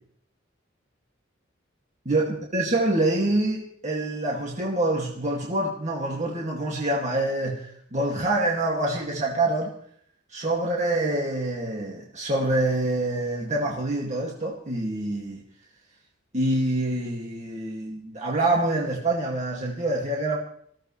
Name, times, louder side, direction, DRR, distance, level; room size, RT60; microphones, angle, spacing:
voice 1, 2.1-9.7 10.3-15.4 16.3-20.4, right 2 dB, 35° right, -2 dB, 2.2 m, -26 dB
19.0 x 15.5 x 3.2 m, 0.64 s
head